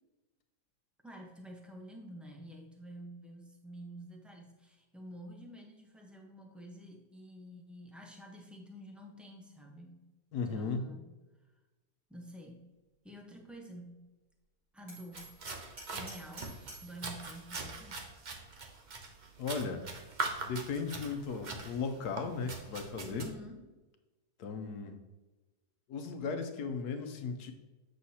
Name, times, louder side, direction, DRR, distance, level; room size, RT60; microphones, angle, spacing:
voice 1, 1.0-10.0 10.5-11.1 12.1-12.7 13.0-14.1 14.7-15.4 15.9-18.1 23.1-23.6, equal, ahead, 1 dB, 0.6 m, -49 dB
voice 2, 10.3-10.9 19.4-19.8 20.4-23.3 24.4-25.0 25.9-27.5, left 4 dB, 80° left, 7 dB, 1.3 m, -36 dB
Hammer, 14.9-17.0, right 2 dB, 65° right, 3.0 m, -49 dB
sound 1, 15.1-23.3, right 3 dB, 40° right, 0.7 m, -42 dB
8.0 x 6.3 x 2.8 m, 1.1 s
omnidirectional pair, 1.7 m